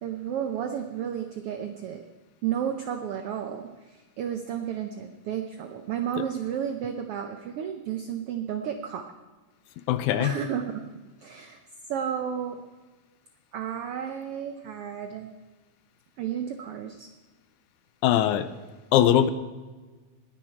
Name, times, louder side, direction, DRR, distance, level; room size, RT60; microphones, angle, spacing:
voice 1, 0.0-2.0 2.4-9.1 10.2-10.8 11.2-11.6 11.9-12.6 13.5-15.3 16.2-17.1, right 9 dB, 85° right, 6 dB, 1.3 m, -32 dB
voice 2, 9.9-10.3 18.0-18.5 18.9-19.3, left 11 dB, 80° left, 13 dB, 2.0 m, -21 dB
19.5 x 10.0 x 4.5 m, 1.3 s
omnidirectional pair, 3.6 m